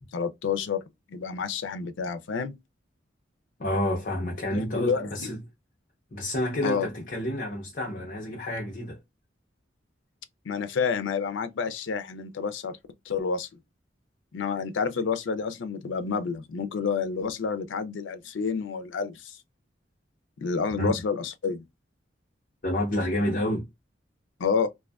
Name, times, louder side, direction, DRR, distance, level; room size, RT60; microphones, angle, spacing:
voice 1, 0.1-0.8 1.1-2.6 4.5-5.1 6.6-6.9 10.5-12.8 13.1-13.5 14.3-19.4 20.4-21.6 24.4-24.7, left 5 dB, 90° left, 0.4 m, -29 dB
voice 2, 3.6-5.4 6.1-9.0 20.7-21.0 22.6-23.7, left 1 dB, 50° left, 0.7 m, -29 dB
2.5 x 2.3 x 2.2 m
head